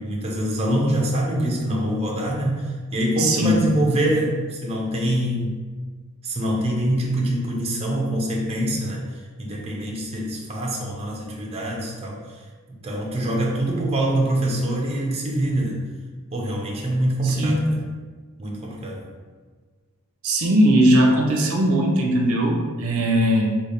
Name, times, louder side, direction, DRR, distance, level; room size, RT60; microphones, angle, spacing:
voice 1, 0.0-5.6 6.2-9.0 9.4-12.2 12.7-15.8 16.3-17.8 18.4-19.1, right 1 dB, 30° right, -2 dB, 0.6 m, -24 dB
voice 2, 3.2-3.7 17.2-17.6 20.2-23.6, right 1 dB, 70° right, 0 dB, 0.6 m, -19 dB
3.3 x 2.4 x 3.9 m, 1.5 s
head